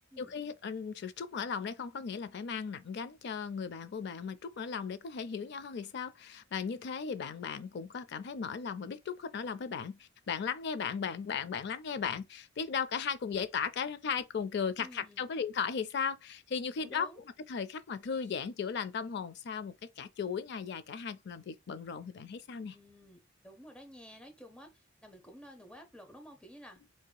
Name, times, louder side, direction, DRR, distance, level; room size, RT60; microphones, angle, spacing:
voice 1, 0.2-17.1 17.5-22.8, left 6 dB, 60° left, 0.4 m, -36 dB
voice 2, 14.8-15.2 16.8-17.2 22.7-26.8, equal, 5° left, 0.8 m, -52 dB
4.8 x 2.7 x 2.2 m
head